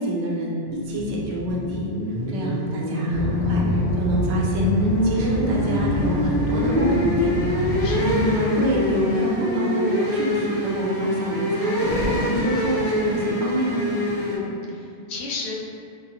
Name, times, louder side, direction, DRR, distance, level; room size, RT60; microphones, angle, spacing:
voice 1, 0.0-1.9 2.3-7.3 7.7-13.9, right 1 dB, 75° right, -3 dB, 0.9 m, -27 dB
sound 1, 0.7-14.4, left 1 dB, 25° left, 0.6 m, -25 dB
sound 2, 3.1-8.2, left 1 dB, 50° right, 0.7 m, -26 dB
voice 2, 7.8-8.3 14.3-15.5, left 3 dB, 70° left, -2 dB, 0.8 m, -34 dB
4.5 x 2.0 x 2.8 m, 2.5 s
omnidirectional pair, 1.1 m